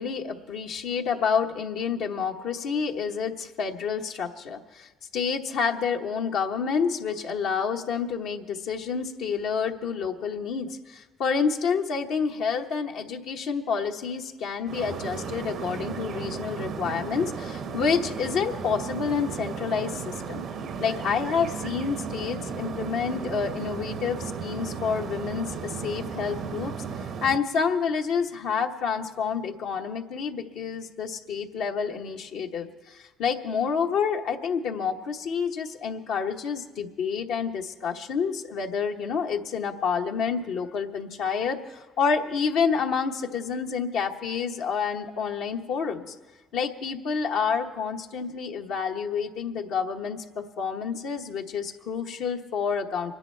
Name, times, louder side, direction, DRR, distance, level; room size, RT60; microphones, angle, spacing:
voice 1, 0.0-20.4 20.8-26.7 27.2-46.1 46.5-53.1, left 6 dB, 80° left, 1 dB, 1.0 m, -28 dB
sound 1, 14.7-27.4, right 6 dB, 65° right, 0.9 m, -35 dB
24.0 x 10.5 x 4.4 m, 1.2 s
supercardioid pair, 65°, 0 cm